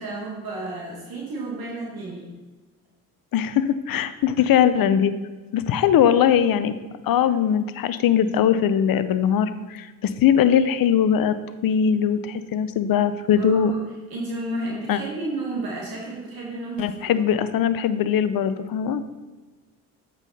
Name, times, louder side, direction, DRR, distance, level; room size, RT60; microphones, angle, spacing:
voice 1, 0.0-2.3 13.4-13.8 14.1-17.1, right 2 dB, 60° right, -3 dB, 1.9 m, -32 dB
voice 2, 3.3-5.1 5.5-6.7 7.0-11.4 11.6-13.7 14.9-15.0 16.8-19.0, left 8 dB, 55° left, 13 dB, 0.7 m, -20 dB
8.1 x 5.6 x 4.1 m, 1.3 s
hypercardioid pair, 50°, 41 cm